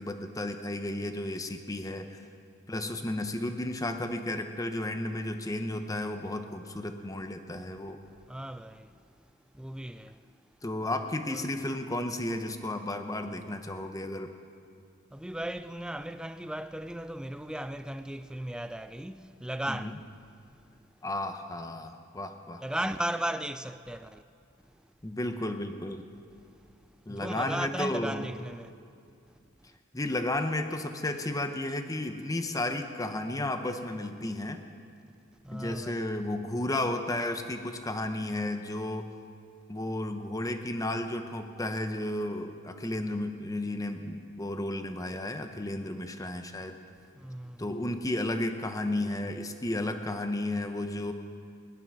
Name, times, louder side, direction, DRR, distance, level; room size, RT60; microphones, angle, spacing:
voice 1, 0.0-2.2 2.7-8.0 10.6-14.3 19.7-19.9 21.0-22.6 25.0-26.1 27.1-28.3 29.9-34.6 35.5-39.1 39.7-46.8 47.6-51.1, left 1 dB, 15° left, 0.8 m, -33 dB
voice 2, 8.3-8.9 9.5-10.2 11.3-11.4 15.1-20.0 22.6-24.2 27.1-28.7 35.4-35.9 47.1-47.7, right 1 dB, 5° right, 0.3 m, -36 dB
19.5 x 12.0 x 6.1 m
head